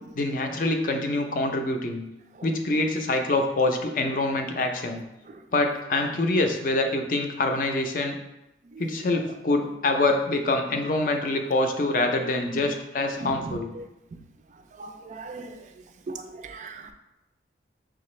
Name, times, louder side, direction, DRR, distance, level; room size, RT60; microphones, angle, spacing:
voice 1, 0.2-2.0 2.4-5.0 5.5-8.2 8.8-13.7, left 2 dB, 50° left, 4 dB, 0.5 m, -25 dB
voice 2, 13.2-13.8 14.8-15.6 16.1-16.9, right 3 dB, 45° right, 7 dB, 0.3 m, -38 dB
5.8 x 2.4 x 3.1 m, 0.91 s
head